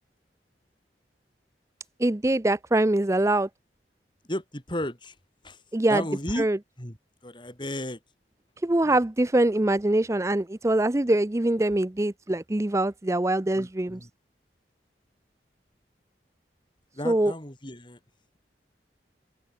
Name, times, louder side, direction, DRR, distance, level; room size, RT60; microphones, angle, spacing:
voice 1, 2.0-3.5 5.7-6.0 6.4-6.6 8.6-14.0 17.0-17.3, right 1 dB, 15° right, 0.6 m, -23 dB
voice 2, 4.3-5.1 5.4-5.6 5.9-6.5 6.8-7.0 7.2-8.0 8.8-9.0 13.5-14.1 16.9-18.0, left 1 dB, 25° left, 6.4 m, -34 dB
open air
head